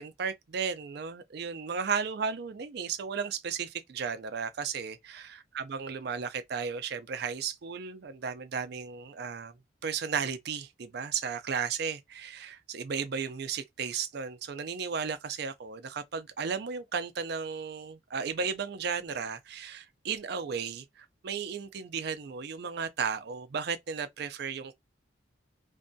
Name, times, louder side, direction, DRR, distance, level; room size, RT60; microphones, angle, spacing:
voice 1, 0.0-9.6 9.8-24.7, right 6 dB, 55° right, 0.4 m, -34 dB
2.6 x 2.5 x 2.2 m
head